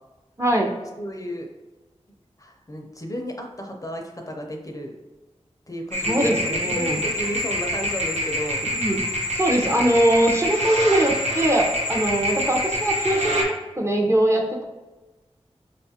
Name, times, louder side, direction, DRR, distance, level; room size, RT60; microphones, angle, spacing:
voice 1, 0.4-0.7 6.1-7.0 8.7-9.0 9.3-13.4 13.8-14.6, right 1 dB, 25° right, 1 dB, 0.6 m, -21 dB
voice 2, 1.0-1.5 2.4-5.0 5.7-8.6, equal, 30° left, 2 dB, 0.5 m, -33 dB
sound 1, 5.9-13.4, equal, 90° right, 0.7 m, -26 dB
4.9 x 2.3 x 2.7 m, 1.2 s
wide cardioid pair, 55°, 11 cm